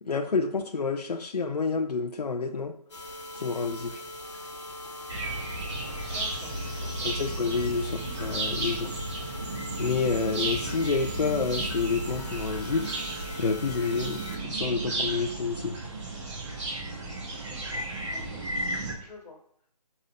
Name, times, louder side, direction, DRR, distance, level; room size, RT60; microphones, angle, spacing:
voice 1, 0.0-2.8 3.4-4.0 7.0-8.9 9.8-12.9 13.4-15.8, left 4 dB, 70° left, 4 dB, 0.8 m, -29 dB
sound 1, 2.9-14.4 14.8-14.9 15.3-15.4 15.8-15.9, left 1 dB, 45° left, 2.5 m, -41 dB
sound 2, 5.1-18.9, right 2 dB, 45° right, 2.5 m, -34 dB
voice 2, 6.0-7.1 7.7-7.9 17.3-17.8 18.2-18.4 18.9-19.4, left 3 dB, 10° left, -10 dB, 2.6 m, -49 dB
14.5 x 5.7 x 2.7 m, 0.69 s
hypercardioid pair, 170°, 21 cm